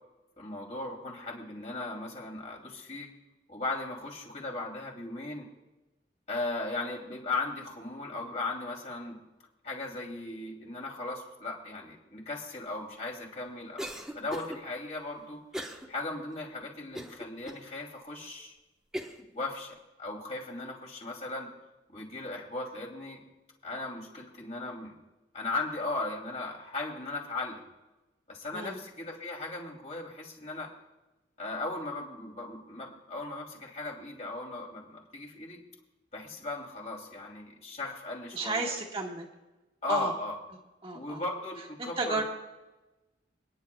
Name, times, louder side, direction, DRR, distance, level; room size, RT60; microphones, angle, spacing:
voice 1, 0.4-3.1 3.5-5.5 6.3-9.2 9.6-13.9 14.1-18.5 19.3-21.5 21.9-23.2 23.6-25.0 25.3-27.7 28.3-30.7 31.4-35.6 36.1-38.8 39.8-40.4 40.9-42.2, left 2 dB, 40° left, -1 dB, 3.1 m, -37 dB
Cough, 13.8-14.6 15.5-15.9 16.3-16.4 16.9-17.6 18.2-18.3 18.9-19.3, equal, 5° right, 1.1 m, -38 dB
voice 2, 38.3-39.3 39.9-40.1 40.8-41.2 41.8-42.2, right 3 dB, 30° right, -3 dB, 1.8 m, -33 dB
29.5 x 10.0 x 2.3 m, 1.1 s
head